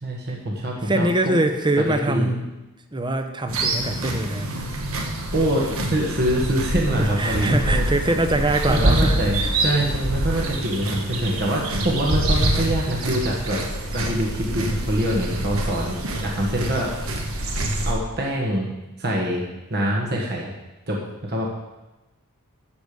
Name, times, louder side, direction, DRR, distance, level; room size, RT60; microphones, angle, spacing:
voice 1, 0.0-1.1 2.1-2.3 5.3-7.9 8.7-13.6 13.9-16.9 17.9-18.7 19.0-19.4 19.7-20.5 20.9-21.0 21.3-21.5, right 1 dB, 45° right, -2 dB, 1.6 m, -24 dB
voice 2, 0.8-2.5 2.9-4.5 7.0-9.5, right 1 dB, 20° right, 6 dB, 0.8 m, -23 dB
sound 1, 3.5-17.9, right 1 dB, 65° right, 1.5 m, -26 dB
13.0 x 5.1 x 6.8 m, 1.1 s
head